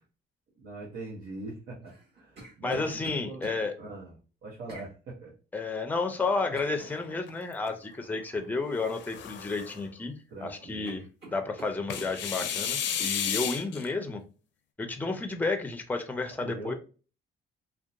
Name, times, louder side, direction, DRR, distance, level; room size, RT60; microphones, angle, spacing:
voice 1, 0.6-3.4 3.8-4.1 4.4-5.3 10.3-11.0 16.4-16.7, right 2 dB, 85° right, -6 dB, 0.9 m, -41 dB
sound 1, 1.8-3.6 4.7-4.9 6.6-6.8 8.8-9.0 9.4-10.1 10.4-10.5 10.8-12.6 13.0-13.2, right 2 dB, 55° right, 1.5 m, -48 dB
voice 2, 2.6-3.7 5.5-11.0 11.3-14.2 14.8-16.7, left 3 dB, 10° left, 6 dB, 0.4 m, -31 dB
sound 2, 6.8-7.7 8.7-9.8 11.9-13.9, left 8 dB, 70° left, 0.5 m, -33 dB
2.7 x 2.2 x 2.5 m, 0.35 s
cardioid pair, 90°, 20 cm